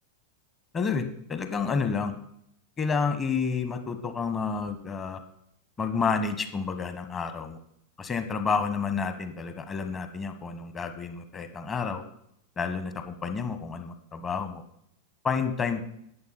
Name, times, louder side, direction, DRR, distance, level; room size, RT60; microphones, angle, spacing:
voice 1, 0.7-2.1 2.8-5.2 5.8-7.6 8.0-12.0 12.6-14.6 15.2-15.8, left 5 dB, 20° left, 9 dB, 1.2 m, -30 dB
11.0 x 8.6 x 4.1 m, 0.72 s
figure-of-eight pair, 90°, 0 cm